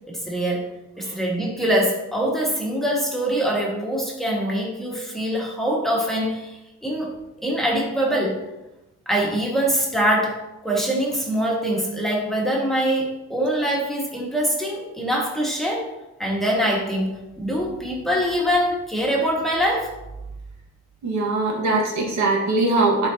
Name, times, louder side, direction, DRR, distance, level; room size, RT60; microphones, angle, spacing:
voice 1, 0.1-0.6 1.0-7.1 7.4-8.4 9.1-15.9 16.2-19.9, equal, ahead, -4 dB, 2.1 m, -24 dB
voice 2, 21.0-23.1, right 2 dB, 70° right, -2 dB, 1.9 m, -21 dB
10.5 x 4.6 x 3.0 m, 0.96 s
cardioid pair, 90°, 30 cm